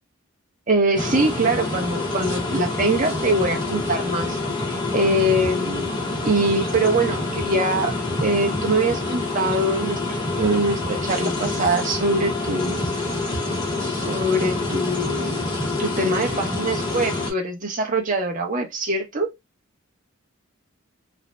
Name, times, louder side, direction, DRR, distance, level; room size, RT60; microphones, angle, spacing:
voice 1, 0.7-4.4 4.9-5.9 6.2-7.9 8.2-12.8 13.8-15.4 15.8-19.3, right 2 dB, 40° right, 0.7 m, -23 dB
sound 1, 0.9-17.3, left 2 dB, 20° left, 0.8 m, -26 dB
2.6 x 2.0 x 3.2 m
head